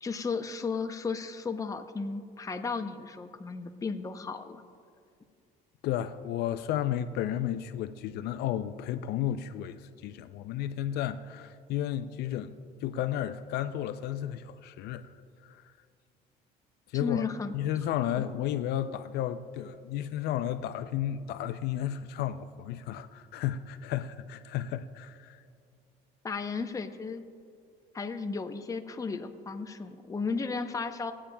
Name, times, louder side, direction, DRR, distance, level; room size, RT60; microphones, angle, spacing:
voice 1, 0.0-4.6 16.9-17.5 18.2-18.3 26.2-27.3 27.9-31.1, left 4 dB, 20° left, 0.6 m, -34 dB
voice 2, 5.8-15.1 15.4-15.6 16.9-17.2 17.5-25.4, left 11 dB, 70° left, 0.4 m, -33 dB
20.0 x 8.6 x 2.2 m
cardioid pair, 105°, 18 cm